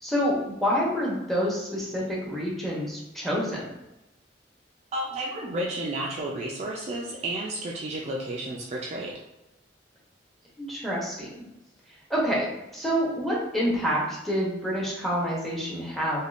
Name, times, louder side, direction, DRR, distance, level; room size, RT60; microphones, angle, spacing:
voice 1, 0.0-3.7 10.6-11.3 12.1-12.5 12.7-16.2, equal, ahead, -5 dB, 0.7 m, -27 dB
voice 2, 4.9-9.2, right 1 dB, 35° right, -2 dB, 0.3 m, -32 dB
3.4 x 2.3 x 2.4 m, 0.92 s
head